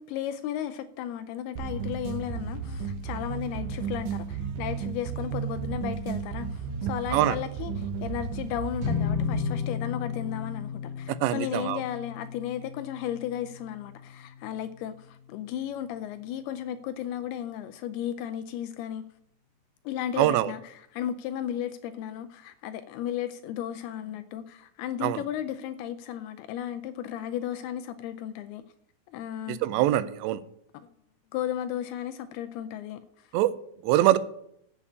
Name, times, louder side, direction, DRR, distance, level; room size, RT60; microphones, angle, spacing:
voice 1, 0.0-19.0 19.9-28.6 29.1-29.6 31.3-33.3, left 10 dB, 85° left, 2.3 m, -34 dB
sound 1, 1.6-9.6, right 6 dB, 70° right, 2.0 m, -34 dB
sound 2, 8.8-15.2, left 7 dB, 35° right, 2.8 m, -34 dB
voice 2, 11.1-11.8 20.2-20.5 25.0-25.2 29.5-30.4 33.3-33.5 33.8-34.2, right 14 dB, 85° right, 2.7 m, -23 dB
8.3 x 7.4 x 8.5 m
omnidirectional pair, 5.1 m